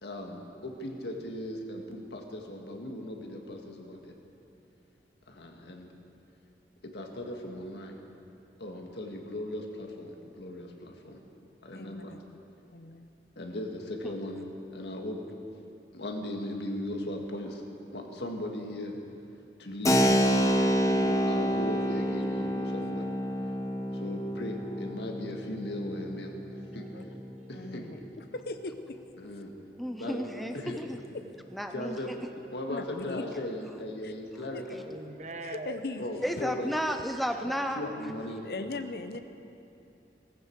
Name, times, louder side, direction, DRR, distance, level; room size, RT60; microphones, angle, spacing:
voice 1, 0.0-4.1 5.3-5.9 6.8-8.0 8.6-11.2 11.6-12.1 13.4-14.4 14.7-15.2 15.9-17.6 17.9-19.0 19.6-20.0 20.8-23.1 23.9-26.3 26.7-26.9 27.5-27.9 29.2-29.5 30.0-30.2 30.5-30.8 31.7-32.1 32.5-34.9 36.0-36.7 37.4-38.5, left 1 dB, 80° left, 2 dB, 1.7 m, -38 dB
voice 2, 11.7-12.2 12.7-13.1 26.9-27.1 27.5-29.0 32.7-33.3 34.0-34.1 34.5-34.6 35.4-36.1 38.4-39.2, left 2 dB, 60° left, 9 dB, 0.7 m, -39 dB
Keyboard (musical), 19.8-28.2, equal, 20° left, 0.9 m, -29 dB
voice 3, 26.7-28.1 34.9-35.8 38.1-38.2, right 2 dB, 40° right, 7 dB, 0.8 m, -44 dB
voice 4, 29.8-31.0 31.5-32.0 36.2-37.8, equal, ahead, 5 dB, 0.5 m, -32 dB
18.0 x 15.0 x 4.6 m, 2.7 s
head